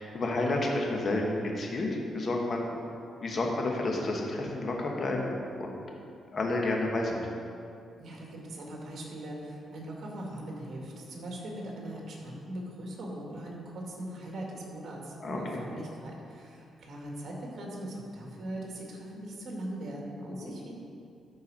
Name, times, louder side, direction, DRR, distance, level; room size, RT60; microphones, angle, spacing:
voice 1, 0.0-2.7 3.2-5.7 6.3-7.2 15.2-15.6 20.4-20.5, left 2 dB, 45° left, 0 dB, 1.5 m, -30 dB
voice 2, 8.0-20.7, right 1 dB, 60° right, -2 dB, 2.2 m, -40 dB
13.5 x 4.7 x 4.3 m, 2.5 s
cardioid pair, 95°, 0 cm